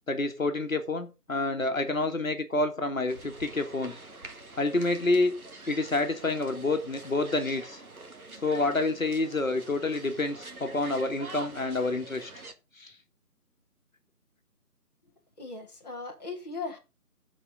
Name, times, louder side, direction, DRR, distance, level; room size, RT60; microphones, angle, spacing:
voice 1, 0.1-4.0 4.6-5.3 5.7-7.8 8.4-12.3 12.8-12.9, left 2 dB, 55° left, 1.6 m, -28 dB
sound 1, 3.1-12.5, right 2 dB, 65° right, 1.6 m, -46 dB
voice 2, 15.4-16.8, left 3 dB, 25° left, 1.4 m, -38 dB
12.5 x 5.0 x 5.0 m
figure-of-eight pair, 160°, 47 cm